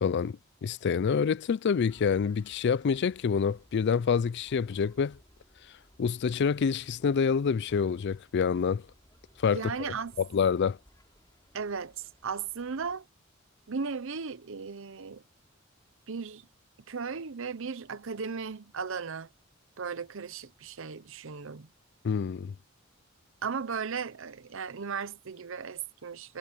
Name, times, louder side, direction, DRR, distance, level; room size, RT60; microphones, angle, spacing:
voice 1, 0.0-5.2 6.0-8.8 9.4-9.6 10.2-10.8 22.0-22.5, left 6 dB, 55° left, 0.4 m, -27 dB
sound 1, 1.8-13.0, equal, 20° left, 7.2 m, -62 dB
voice 2, 9.5-10.1 11.5-13.0 13.7-15.2 16.1-16.5 16.9-19.3 19.8-21.7 23.4-26.4, right 5 dB, 65° right, 0.7 m, -36 dB
head